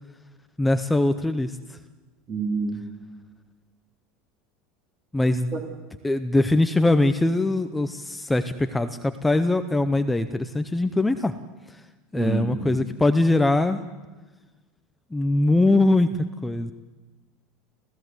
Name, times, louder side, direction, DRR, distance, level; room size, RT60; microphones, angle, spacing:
voice 1, 0.6-1.8 5.1-5.6 6.0-11.3 12.1-13.8 15.1-16.7, left 2 dB, 5° left, 9 dB, 0.6 m, -22 dB
voice 2, 2.3-2.8 5.5-5.6 12.1-12.8, right 4 dB, 25° right, 1 dB, 3.4 m, -28 dB
28.0 x 15.5 x 7.9 m, 1.2 s
supercardioid pair, 160°, 0 cm